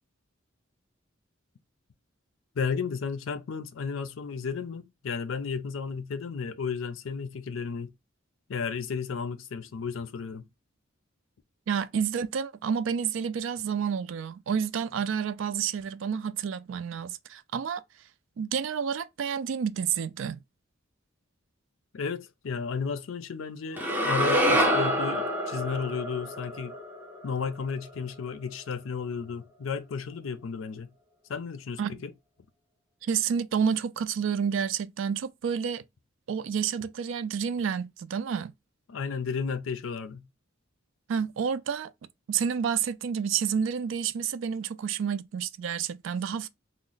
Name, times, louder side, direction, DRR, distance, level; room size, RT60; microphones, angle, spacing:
voice 1, 2.6-7.9 8.5-10.5 21.9-26.7 27.2-30.9 31.3-32.1 38.9-40.2, left 5 dB, 80° left, 0.5 m, -33 dB
voice 2, 11.7-17.8 18.4-20.4 31.8-32.0 33.0-35.8 36.3-38.5 41.1-41.9 42.3-46.5, right 7 dB, 70° right, 0.3 m, -29 dB
sound 1, 23.8-28.0, equal, 10° right, 0.5 m, -27 dB
3.0 x 2.1 x 3.9 m
head